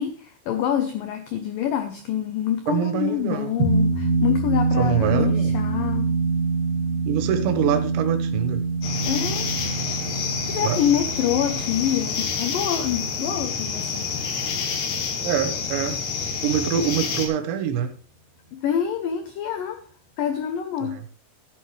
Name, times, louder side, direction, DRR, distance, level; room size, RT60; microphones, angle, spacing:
voice 1, 0.0-6.1 9.1-9.5 10.5-14.1 18.5-19.8 20.2-21.0, left 9 dB, 85° left, 6 dB, 1.9 m, -26 dB
voice 2, 2.7-3.6 4.8-5.5 7.1-8.6 10.6-10.8 15.2-16.0 16.4-17.9 20.8-21.0, right 9 dB, 80° right, 6 dB, 3.4 m, -25 dB
sound 1, 3.6-14.3, right 4 dB, 55° right, 4.5 m, -26 dB
sound 2, 8.8-17.3, left 5 dB, 70° left, 3.9 m, -28 dB
14.5 x 9.7 x 3.3 m, 0.43 s
omnidirectional pair, 5.3 m